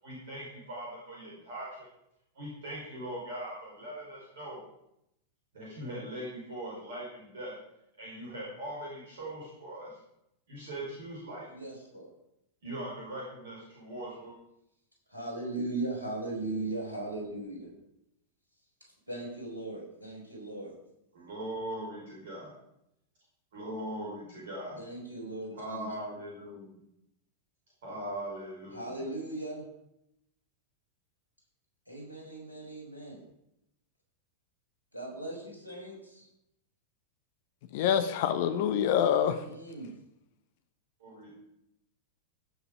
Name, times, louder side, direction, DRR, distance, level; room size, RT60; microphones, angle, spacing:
voice 1, 0.0-1.9 2.3-4.6 5.5-7.5 8.0-10.0 10.5-11.5 12.6-14.3 21.1-22.5 23.5-24.8 25.5-26.8 27.8-29.1 41.0-41.4, right 1 dB, 60° right, -5 dB, 5.0 m, -40 dB
voice 2, 11.5-12.1 15.1-17.7 19.1-20.7 24.8-25.9 28.7-29.6 31.9-33.2 34.9-36.3 39.4-39.9, right 2 dB, 85° right, -2 dB, 5.1 m, -38 dB
voice 3, 37.7-39.4, left 9 dB, 50° left, 10 dB, 0.9 m, -26 dB
16.5 x 7.0 x 5.0 m, 0.82 s
figure-of-eight pair, 90°, 0 cm